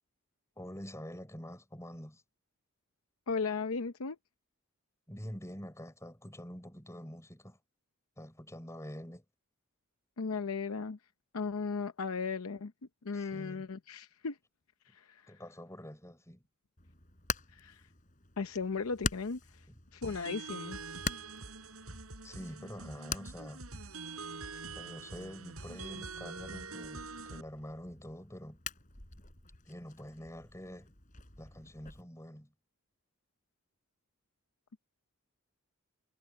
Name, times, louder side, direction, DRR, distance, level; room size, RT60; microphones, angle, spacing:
voice 1, 0.6-2.2 5.1-7.6 8.2-9.2 13.1-13.7 15.3-16.4 19.7-19.8 22.2-23.7 24.8-28.6 29.7-30.9 31.4-32.5, equal, 15° left, 5.3 m, -46 dB
voice 2, 3.3-4.2 10.2-11.0 11.3-12.7 13.0-14.4 14.9-15.3 17.5-17.8 18.4-19.6 19.9-20.8, left 4 dB, 85° left, 0.7 m, -36 dB
Hammer, 16.8-32.0, left 5 dB, 40° left, 3.9 m, -45 dB
sound 1, 20.0-27.4, right 4 dB, 90° right, 4.8 m, -45 dB
head